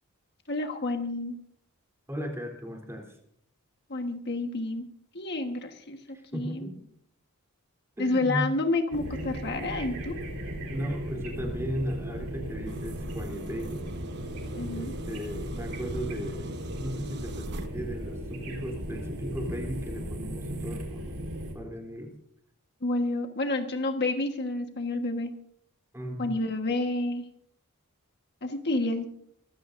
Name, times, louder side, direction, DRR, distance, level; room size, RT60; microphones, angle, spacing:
voice 1, 0.5-1.3 3.9-4.9 5.1-6.0 6.3-6.7 8.0-10.2 14.5-14.9 22.8-25.3 26.2-27.2 28.4-29.2, left 2 dB, 50° left, 4 dB, 1.4 m, -29 dB
voice 2, 2.1-3.2 6.1-6.7 8.0-8.5 10.7-13.8 14.7-22.1 25.9-26.3, equal, 10° right, 2 dB, 3.4 m, -36 dB
sound 1, 8.9-21.5, equal, 70° right, 4.1 m, -36 dB
sound 2, 12.7-17.7, right 1 dB, 50° right, 1.1 m, -45 dB
24.5 x 15.5 x 2.6 m, 0.67 s
head